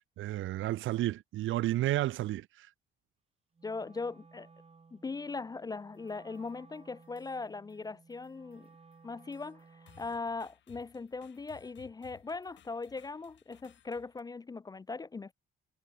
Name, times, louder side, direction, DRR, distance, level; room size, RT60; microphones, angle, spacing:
voice 1, 0.2-2.7, right 15 dB, 80° right, 0.9 m, -31 dB
Wind instrument woodwind instrument, 3.5-10.3, right 4 dB, 30° right, 6.9 m, -59 dB
voice 2, 3.6-4.5 4.9-8.7 9.0-15.3, left 4 dB, 20° left, 0.3 m, -40 dB
sound 1, 5.8-6.6 7.0-7.8 8.1-14.2, left 10 dB, 70° left, 3.7 m, -62 dB
cardioid pair, 90°, 20 cm